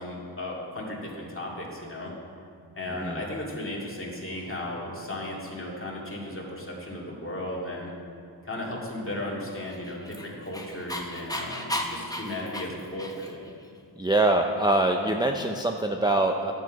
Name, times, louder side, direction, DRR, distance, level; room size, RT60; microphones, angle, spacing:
voice 1, 0.0-2.1 2.7-7.9 8.4-13.4, left 1 dB, 30° left, -3 dB, 2.3 m, -35 dB
Dog, 9.7-13.5, left 1 dB, 10° left, 0.9 m, -34 dB
voice 2, 14.0-16.5, right 2 dB, 10° right, 3 dB, 0.5 m, -24 dB
10.5 x 8.0 x 5.2 m, 2.4 s
wide cardioid pair, 45°, 45 cm